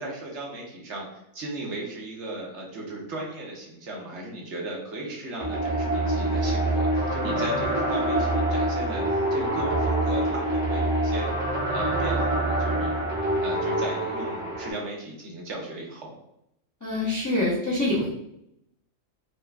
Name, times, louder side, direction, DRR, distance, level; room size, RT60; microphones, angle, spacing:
voice 1, 0.0-11.3 11.7-13.0 13.4-16.1, right 1 dB, 65° right, -2 dB, 1.0 m, -36 dB
sound 1, 5.4-14.7, right 1 dB, 40° right, 1.6 m, -25 dB
voice 2, 16.8-18.1, left 2 dB, 25° left, -6 dB, 0.4 m, -25 dB
4.1 x 2.3 x 2.2 m, 0.79 s
omnidirectional pair, 1.4 m